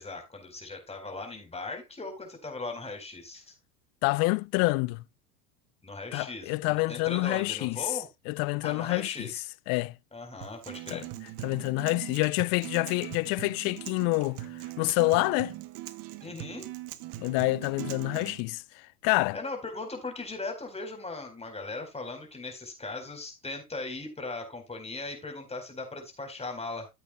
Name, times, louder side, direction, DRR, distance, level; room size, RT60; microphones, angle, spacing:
voice 1, 0.0-3.5 5.8-8.1 8.6-9.4 10.1-11.1 16.2-16.7 19.3-26.9, left 3 dB, 15° left, 4.4 m, -38 dB
voice 2, 4.0-5.0 6.1-7.8 8.3-9.3 9.7-10.0 10.9-11.0 11.4-14.5 14.8-15.5 17.2-18.6 19.0-19.4, left 24 dB, 50° left, 0.6 m, -27 dB
Acoustic guitar, 10.4-18.4, right 15 dB, 50° right, 1.0 m, -41 dB
14.0 x 8.3 x 2.3 m
hypercardioid pair, 85°, 46 cm